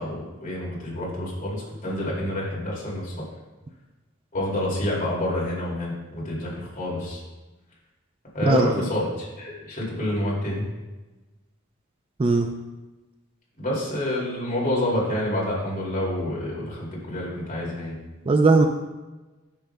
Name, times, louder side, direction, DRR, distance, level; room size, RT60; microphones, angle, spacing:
voice 1, 0.0-3.2 4.3-7.2 8.3-10.7 13.6-17.9, left 1 dB, 40° left, -5 dB, 2.4 m, -28 dB
voice 2, 8.5-8.9 12.2-12.5 18.3-18.7, right 3 dB, 25° right, 5 dB, 0.4 m, -18 dB
10.0 x 6.3 x 2.2 m, 1.1 s
head